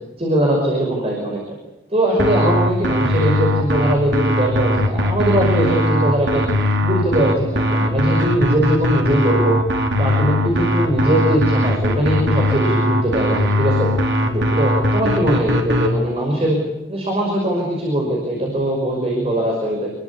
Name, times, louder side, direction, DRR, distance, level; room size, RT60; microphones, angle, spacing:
voice 1, 0.2-1.4 1.9-6.4 6.8-9.6 10.0-13.9 14.2-16.6 16.9-19.9, right 1 dB, 30° right, 0 dB, 5.7 m, -20 dB
sound 1, 2.2-15.9, left 1 dB, 75° right, 4.3 m, -19 dB
27.5 x 21.5 x 8.6 m, 0.97 s
head